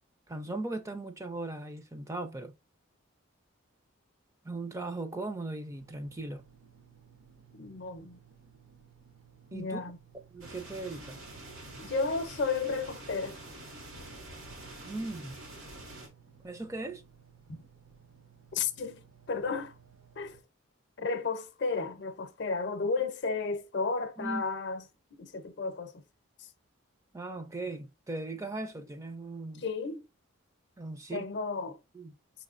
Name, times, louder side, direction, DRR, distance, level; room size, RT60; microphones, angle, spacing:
voice 1, 0.3-2.5 4.4-6.4 9.5-9.8 10.3-11.2 14.8-15.4 16.4-17.0 24.2-24.4 27.1-29.6 30.8-31.3 31.9-32.1, right 2 dB, 15° right, 0.4 m, -38 dB
sound 1, 5.7-20.4, right 7 dB, 70° right, 0.7 m, -59 dB
voice 2, 7.5-8.2 9.5-10.0 11.7-13.4 17.5-17.6 18.5-19.8 20.2-20.4 21.0-26.0 26.4-26.5 29.6-30.1 31.1-31.8, left 4 dB, 55° left, 0.6 m, -33 dB
sound 2, 10.4-16.1, right 1 dB, 85° right, 1.9 m, -46 dB
5.5 x 3.1 x 2.4 m
head